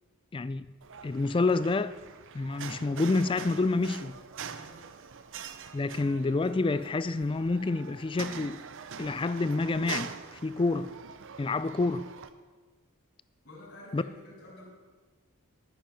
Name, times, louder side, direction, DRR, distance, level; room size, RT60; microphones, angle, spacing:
voice 1, 0.3-0.7 1.0-1.9 2.3-4.2 5.7-8.6 9.0-10.1 10.4-10.9 11.4-12.1 13.9-14.0, left 3 dB, 20° left, 0.3 m, -28 dB
sound 1, 0.8-12.3, right 6 dB, 60° right, 0.7 m, -44 dB
voice 2, 4.4-4.9 11.5-11.7 13.4-14.7, left 1 dB, 55° left, 4.6 m, -50 dB
12.0 x 10.0 x 5.8 m
head